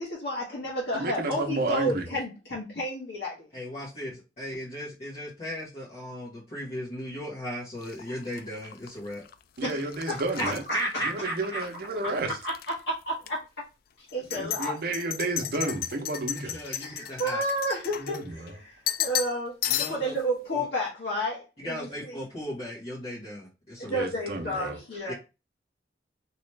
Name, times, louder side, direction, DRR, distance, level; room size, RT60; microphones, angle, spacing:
voice 1, 0.0-3.5 9.6-9.8 10.1-10.5 12.4-12.5 13.1-13.4 14.1-14.8 16.6-22.2 23.8-25.1, equal, 70° left, 1.2 m, -31 dB
voice 2, 0.9-2.0 9.6-10.6 11.0-12.3 14.3-16.6 18.0-18.5 23.9-24.8, right 2 dB, 55° right, 0.7 m, -31 dB
voice 3, 3.5-9.2 10.4-10.5 10.7-11.6 16.3-17.4 19.7-20.1 20.5-20.6 21.6-24.0 25.1-25.2, equal, 40° left, 1.5 m, -36 dB
sound 1, 7.8-11.8 12.1-12.7 13.2-13.3 14.1-18.5 18.9-19.4 19.6-20.2, left 11 dB, 55° left, 0.3 m, -34 dB
3.1 x 3.0 x 3.2 m
head